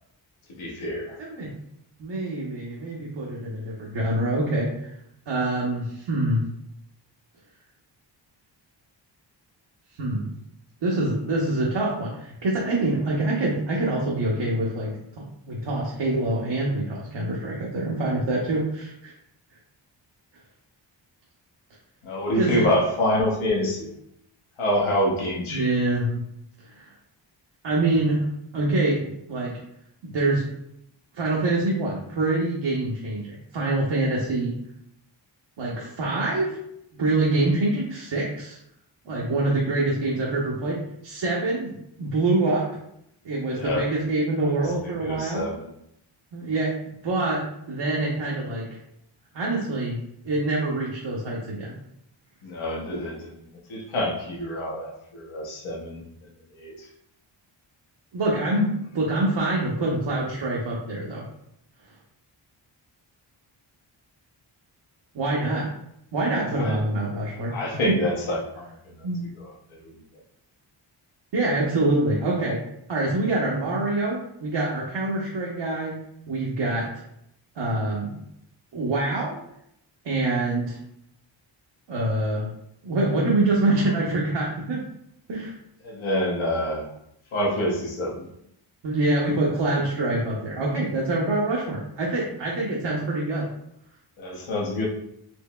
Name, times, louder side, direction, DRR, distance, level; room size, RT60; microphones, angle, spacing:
voice 1, 0.5-1.2 22.0-23.9 24.6-25.7 43.5-43.9 44.4-44.7 45.0-45.7 52.4-56.0 56.5-56.9 66.6-66.8 67.5-69.0 69.3-69.9 85.8-86.9 87.3-88.3 94.2-94.9, left 1 dB, 90° left, -3 dB, 0.9 m, -27 dB
voice 2, 1.2-1.5 2.0-4.9 5.3-6.4 10.0-10.3 10.8-19.2 22.3-22.7 25.5-26.2 26.6-26.9 27.6-28.3 28.5-29.6 30.0-30.5 31.1-34.5 35.6-36.6 36.9-38.6 39.1-41.7 42.0-42.7 43.2-45.4 46.3-46.7 47.0-48.7 49.3-50.0 50.2-51.7 58.1-61.2 65.1-65.7 66.1-67.5 67.9-68.0 69.0-69.3 71.3-72.6 72.9-76.0 76.3-77.0 77.5-78.2 78.7-79.4 80.0-80.8 81.9-82.5 82.8-84.8 85.3-85.6 88.8-93.5, right 2 dB, 65° right, -4 dB, 0.8 m, -25 dB
4.5 x 2.9 x 2.2 m, 0.76 s
wide cardioid pair, 80°, 47 cm